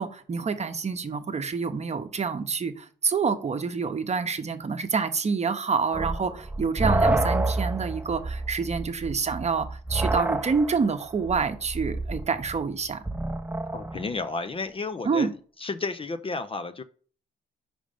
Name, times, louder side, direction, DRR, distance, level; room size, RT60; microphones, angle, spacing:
voice 1, 0.0-13.0 15.0-15.3, right 5 dB, 35° right, 0.9 m, -27 dB
sound 1, 5.9-14.1, right 2 dB, 10° right, 0.7 m, -29 dB
voice 2, 13.7-15.3 15.6-16.8, left 3 dB, 25° left, 0.5 m, -32 dB
5.2 x 5.0 x 5.1 m
cardioid pair, 90°, 20 cm